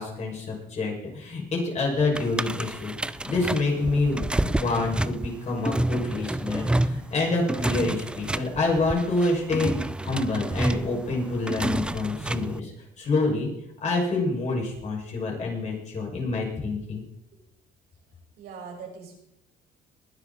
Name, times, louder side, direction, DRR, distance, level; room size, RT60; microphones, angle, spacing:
voice 1, 0.0-9.7 10.0-12.7 13.0-13.5 13.8-17.0, left 3 dB, 45° left, -1 dB, 6.5 m, -27 dB
sound 1, 2.1-12.6, right 1 dB, 5° right, 0.4 m, -29 dB
voice 2, 18.4-19.1, right 5 dB, 75° right, 0 dB, 5.8 m, -41 dB
21.5 x 10.5 x 4.3 m, 0.78 s
cardioid pair, 110°, 17 cm